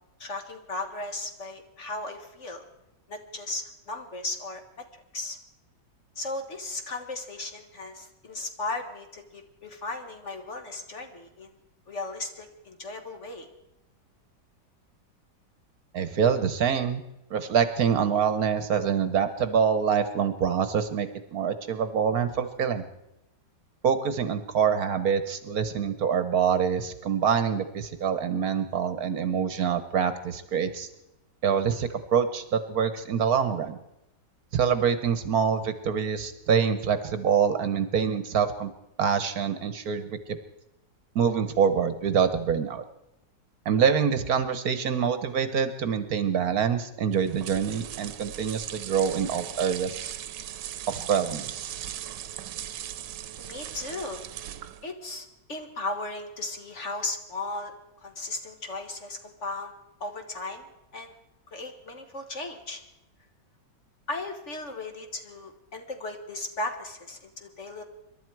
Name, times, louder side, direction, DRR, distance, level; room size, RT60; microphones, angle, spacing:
voice 1, 0.2-2.6 3.1-4.9 5.1-5.4 6.2-11.5 11.9-13.5 53.4-54.2 54.8-57.7 58.0-59.7 60.0-60.7 60.9-61.1 61.5-62.8 64.1-67.8, left 2 dB, 45° left, 5 dB, 1.7 m, -36 dB
voice 2, 15.9-17.0 17.3-22.9 23.8-30.9 31.4-33.8 34.5-38.7 39.0-40.4 41.1-42.8 43.6-50.1 50.9-51.7, right 7 dB, 60° right, 11 dB, 1.3 m, -25 dB
sound 1, 47.1-54.9, right 11 dB, 80° right, 1.4 m, -38 dB
26.5 x 12.0 x 4.6 m, 0.90 s
omnidirectional pair, 1.9 m